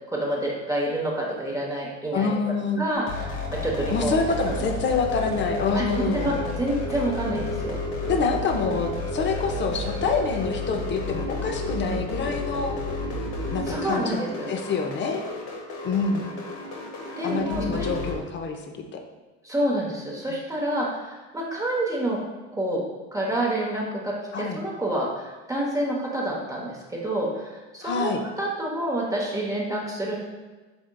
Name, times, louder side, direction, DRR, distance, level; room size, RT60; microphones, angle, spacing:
voice 1, 0.1-2.4 2.8-4.2 4.5-4.6 5.7-7.8 13.7-14.5 17.2-17.9 19.4-22.2 22.5-22.8 23.1-28.1 28.4-30.2, right 1 dB, 10° right, -3 dB, 0.9 m, -28 dB
voice 2, 2.1-2.8 3.9-6.4 8.1-12.8 13.5-14.2 14.5-15.2 15.8-16.3 17.2-18.6 18.9-19.0 24.3-24.6 27.8-28.2, left 4 dB, 35° left, 4 dB, 0.6 m, -26 dB
sound 1, 3.0-18.2, left 2 dB, 70° left, 1.1 m, -31 dB
5.2 x 3.5 x 2.3 m, 1.2 s
hypercardioid pair, 80°, 35 cm